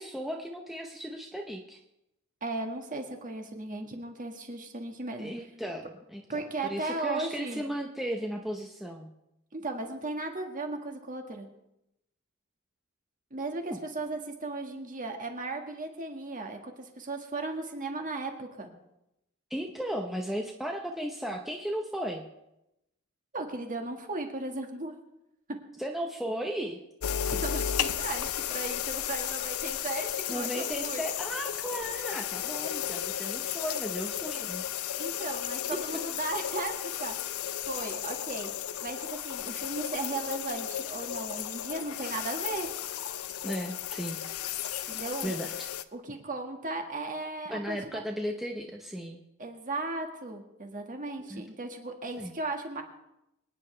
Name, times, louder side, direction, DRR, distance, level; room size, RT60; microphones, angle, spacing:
voice 1, 0.0-1.8 5.2-9.1 13.6-13.8 19.5-22.2 25.8-26.8 30.3-34.6 43.4-44.2 45.2-45.7 47.5-49.2 51.3-51.4 52.2-52.3, equal, ahead, 1 dB, 0.8 m, -35 dB
voice 2, 2.4-5.3 6.3-7.6 9.5-11.5 13.3-18.7 23.3-24.9 27.3-31.0 35.0-37.2 37.7-38.5 38.8-42.7 44.9-45.3 45.9-48.0 49.4-52.8, right 2 dB, 40° right, 4 dB, 1.7 m, -36 dB
sound 1, 27.0-45.8, left 10 dB, 80° left, 0.5 m, -34 dB
25.0 x 9.8 x 3.3 m, 0.88 s
head